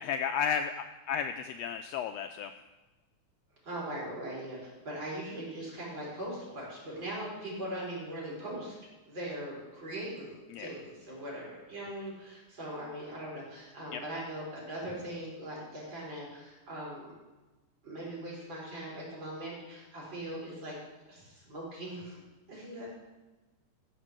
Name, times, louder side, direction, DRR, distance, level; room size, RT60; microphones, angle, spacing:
voice 1, 0.0-2.5 10.5-10.7 13.9-14.0, left 7 dB, 85° left, 7 dB, 1.4 m, -33 dB
voice 2, 3.6-8.8 9.1-17.1 17.8-20.8 21.1-22.2 22.5-22.9, right 1 dB, 40° right, -5 dB, 4.9 m, -40 dB
14.5 x 5.3 x 7.5 m, 1.2 s
omnidirectional pair, 3.4 m